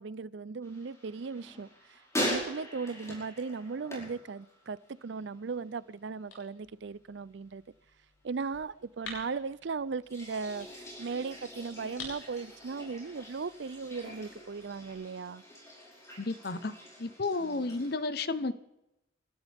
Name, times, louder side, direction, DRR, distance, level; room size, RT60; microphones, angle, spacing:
voice 1, 0.0-7.6 8.2-10.7 11.0-15.4 17.4-17.8, right 4 dB, 65° right, 0.5 m, -37 dB
sound 1, 0.6-5.1 5.3-5.9 10.0-17.9, equal, 15° left, 5.1 m, -42 dB
sound 2, 1.4-14.9, left 3 dB, 75° left, 7.5 m, -53 dB
voice 2, 16.2-16.7 17.0-18.5, left 3 dB, 55° left, 0.9 m, -32 dB
29.5 x 13.0 x 3.5 m
head